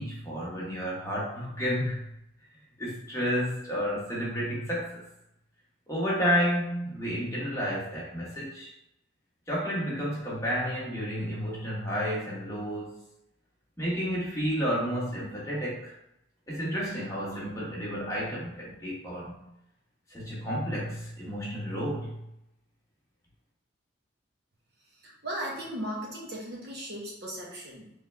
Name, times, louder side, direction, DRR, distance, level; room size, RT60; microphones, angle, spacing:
voice 1, 0.0-2.0 2.8-5.0 5.9-8.7 9.5-13.0 13.8-15.9 16.5-19.5 20.1-22.2, equal, 15° left, -6 dB, 1.1 m, -31 dB
voice 2, 25.0-27.9, right 1 dB, 55° right, -3 dB, 1.0 m, -37 dB
3.5 x 3.3 x 3.3 m, 0.84 s
head